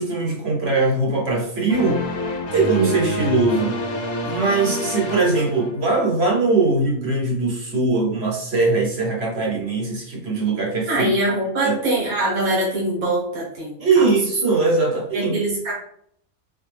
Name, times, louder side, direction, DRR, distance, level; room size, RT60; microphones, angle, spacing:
voice 1, 0.0-2.0 2.5-3.8 4.2-11.1 11.6-11.8 13.8-15.3, right 3 dB, 50° right, -1 dB, 1.1 m, -21 dB
sound 1, 1.7-6.2, left 1 dB, 50° left, 0.9 m, -28 dB
voice 2, 10.9-14.1 15.1-15.7, right 1 dB, 75° right, -4 dB, 1.8 m, -23 dB
4.0 x 3.8 x 3.3 m, 0.69 s
omnidirectional pair, 1.5 m